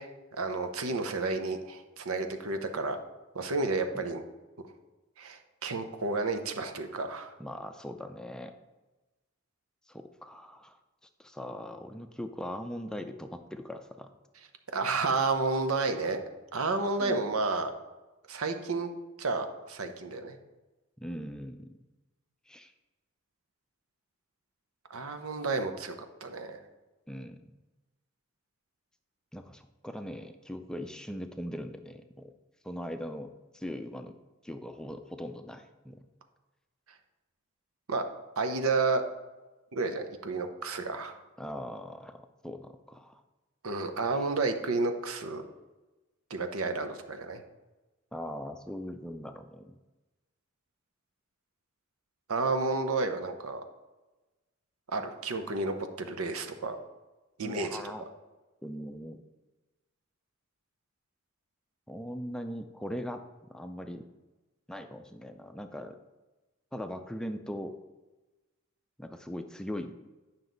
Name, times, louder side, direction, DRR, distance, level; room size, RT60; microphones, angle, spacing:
voice 1, 0.0-3.0 3.3-4.2 5.2-7.3 14.7-16.2 16.5-17.7 18.3-18.9 19.2-20.4 24.9-25.9 26.2-26.6 37.9-38.0 38.4-39.0 39.7-41.1 43.6-45.4 46.3-47.4 52.3-53.6 54.9-56.8 57.4-57.8, right 3 dB, 90° right, 7 dB, 0.8 m, -31 dB
voice 2, 7.4-8.5 9.9-10.8 11.2-14.1 17.0-17.2 21.0-21.8 22.5-22.7 27.1-27.5 29.3-32.3 32.6-34.1 34.4-36.1 41.4-43.2 48.1-49.8 57.4-58.0 58.6-59.2 61.9-64.0 64.7-66.0 66.7-67.8 69.0-70.0, equal, 5° left, 7 dB, 0.4 m, -40 dB
9.3 x 5.8 x 3.9 m, 1.1 s
head